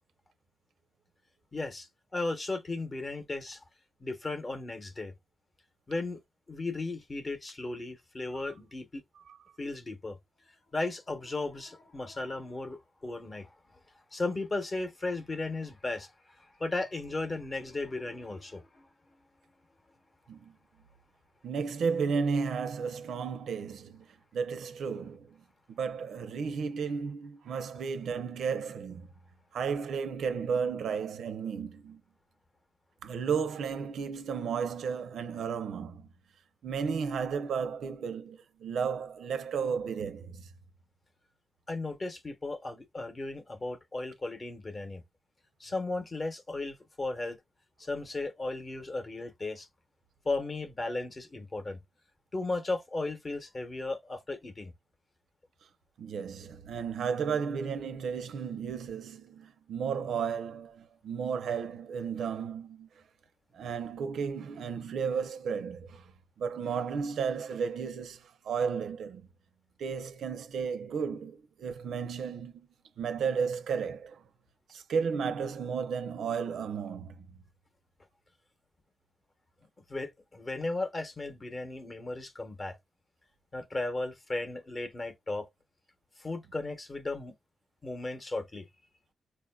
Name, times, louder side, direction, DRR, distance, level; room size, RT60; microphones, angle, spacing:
voice 1, 1.5-1.9 2.1-3.6 4.0-5.1 5.9-6.2 6.5-9.0 9.6-10.2 10.7-13.5 14.1-16.1 16.6-18.8 41.7-45.0 45.6-47.4 47.8-49.7 50.2-51.8 52.3-54.7 79.9-82.7 83.5-85.5 86.2-87.3 87.8-88.6, left 2 dB, 25° left, 0.8 m, -35 dB
voice 2, 21.4-24.1 24.3-25.4 25.7-29.1 29.5-32.0 33.0-36.1 36.6-40.5 56.0-62.9 63.5-66.1 66.4-69.3 69.8-72.7 73.0-74.2 74.7-77.3, right 6 dB, 85° right, 0.5 m, -33 dB
4.4 x 2.5 x 2.2 m
wide cardioid pair, 165°, 0 cm